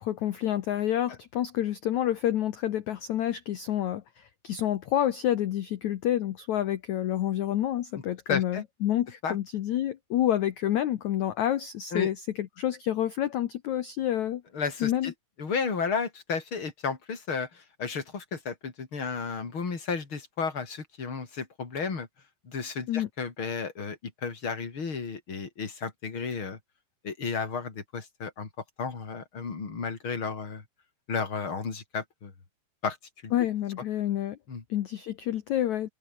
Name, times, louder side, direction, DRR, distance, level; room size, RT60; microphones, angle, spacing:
voice 1, 0.0-14.4 14.8-15.1 22.9-23.1 33.3-34.4 34.7-35.9, left 12 dB, 90° left, 1.6 m, -28 dB
voice 2, 8.3-8.6 9.2-9.4 11.9-12.1 14.5-15.1 15.4-22.1 22.4-26.6 27.0-28.5 28.8-30.6 31.1-32.3 32.8-33.0 33.2-33.3 34.5-34.6, left 5 dB, 30° left, 4.2 m, -33 dB
omnidirectional pair, 5.0 m